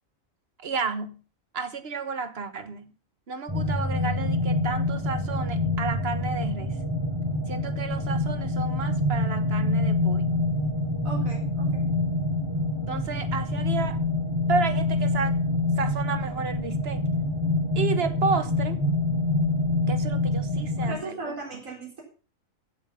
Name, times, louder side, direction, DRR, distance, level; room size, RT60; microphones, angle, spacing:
voice 1, 0.6-1.2 1.5-2.9 3.3-6.8 7.5-10.4 12.9-14.0 14.5-15.4 15.8-17.0 17.7-18.8 19.9-21.3, right 5 dB, 50° right, 1.3 m, -31 dB
sound 1, 3.5-20.9, left 2 dB, 20° right, 3.0 m, -26 dB
voice 2, 11.0-11.8 20.8-22.0, right 2 dB, 75° right, 4.5 m, -37 dB
15.5 x 7.2 x 5.5 m
omnidirectional pair, 1.4 m